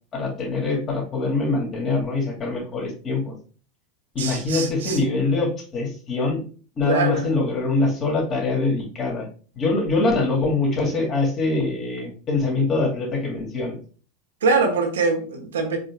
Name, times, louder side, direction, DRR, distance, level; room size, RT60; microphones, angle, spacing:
voice 1, 0.1-3.3 4.1-6.4 6.8-9.3 9.6-13.8, left 3 dB, 35° left, 0 dB, 2.2 m, -23 dB
voice 2, 4.2-5.0 6.8-7.3 14.4-15.8, right 4 dB, 75° right, 2 dB, 1.2 m, -23 dB
5.0 x 4.6 x 2.3 m, 0.39 s
figure-of-eight pair, 80°, 0 cm